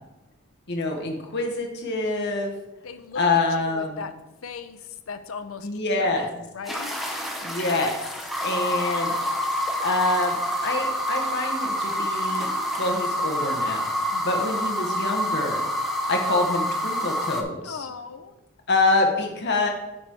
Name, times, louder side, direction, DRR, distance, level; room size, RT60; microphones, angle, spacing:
voice 1, 0.7-2.5 3.1-4.0 5.6-6.3 7.4-8.0 8.4-9.1 9.8-10.4 10.6-12.5 12.8-13.8 14.2-15.6 16.1-17.8 18.7-19.7, left 2 dB, 50° left, 2 dB, 1.3 m, -25 dB
voice 2, 2.8-3.2 3.5-4.1 4.4-6.9 8.4-9.4 14.1-14.4 17.6-18.3, left 5 dB, 65° left, 11 dB, 0.6 m, -38 dB
sound 1, 6.6-17.4, equal, ahead, 0.7 m, -27 dB
9.1 x 4.2 x 4.6 m, 1.0 s
head